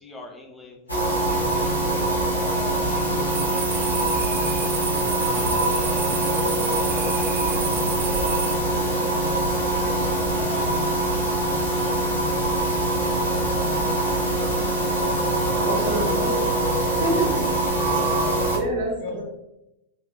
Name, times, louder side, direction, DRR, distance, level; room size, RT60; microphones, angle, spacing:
voice 1, 0.0-0.8 1.2-2.1 2.8-3.9 5.2-9.3 10.0-10.3 10.5-10.8 11.1-12.9, left 1 dB, 15° left, 1 dB, 0.6 m, -47 dB
sound 1, 0.9-18.6, right 1 dB, 85° left, 0.8 m, -23 dB
voice 2, 2.4-2.9 5.0-5.2 14.7-15.2 16.8-16.9 17.6-18.5 19.0-19.2, left 3 dB, 50° left, 0 dB, 0.7 m, -40 dB
sound 2, 3.3-8.6, right 7 dB, 40° right, 0.4 m, -32 dB
voice 3, 4.9-5.7 6.0-6.4 9.8-10.4 14.4-14.6 15.6-16.5 17.0-17.4 18.5-19.2, right 2 dB, 60° right, -3 dB, 1.2 m, -30 dB
3.3 x 2.7 x 2.2 m, 0.89 s
figure-of-eight pair, 90°, 0 cm